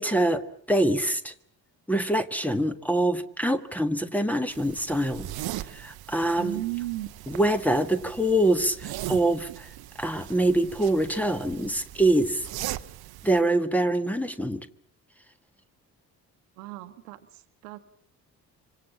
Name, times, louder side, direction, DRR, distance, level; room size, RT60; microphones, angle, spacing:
voice 1, 0.0-1.3 1.9-5.3 5.7-6.6 7.3-9.7 10.0-12.4 13.2-14.6, right 1 dB, 5° left, 10 dB, 1.5 m, -25 dB
sound 1, 4.5-13.4, right 14 dB, 50° right, 1.0 m, -39 dB
voice 2, 6.3-7.1 16.6-17.8, right 18 dB, 70° right, 10 dB, 1.3 m, -35 dB
25.5 x 25.5 x 7.4 m, 0.66 s
figure-of-eight pair, 45°, 49 cm